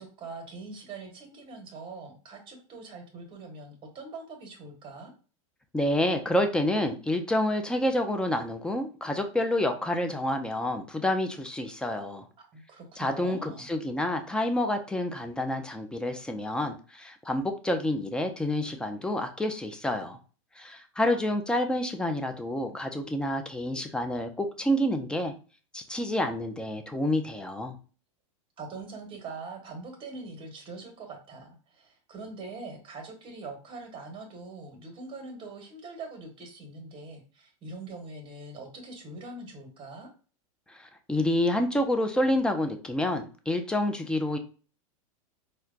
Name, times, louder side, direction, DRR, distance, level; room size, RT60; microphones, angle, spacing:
voice 1, 0.0-5.1 12.4-13.7 28.6-40.1, right 3 dB, 30° right, 3 dB, 1.1 m, -43 dB
voice 2, 5.7-12.3 13.0-20.2 20.6-25.3 25.7-27.8 40.7-44.4, left 1 dB, 5° left, 6 dB, 0.4 m, -28 dB
4.3 x 2.2 x 2.4 m, 0.37 s
hypercardioid pair, 125°, 18 cm